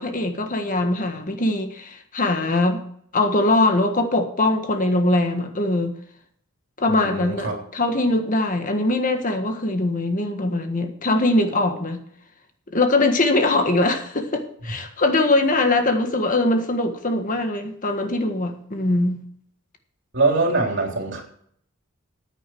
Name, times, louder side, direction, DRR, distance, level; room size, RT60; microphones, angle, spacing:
voice 1, 0.0-2.8 3.1-5.9 6.8-12.0 12.7-19.2, left 2 dB, 40° left, 1.5 m, -22 dB
voice 2, 6.9-7.6 20.1-21.2, right 3 dB, 60° right, 3.5 m, -23 dB
14.5 x 9.1 x 4.6 m
head